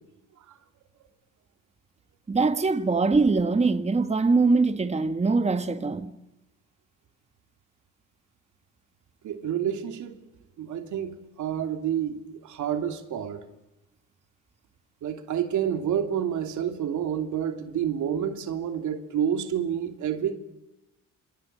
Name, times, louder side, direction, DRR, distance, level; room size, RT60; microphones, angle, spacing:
voice 1, 2.3-6.1, right 3 dB, 20° right, 1.4 m, -23 dB
voice 2, 9.2-10.2 10.6-13.4 15.0-20.3, right 9 dB, 75° right, 2.8 m, -29 dB
29.0 x 27.0 x 6.8 m
cardioid pair, 90°, 30 cm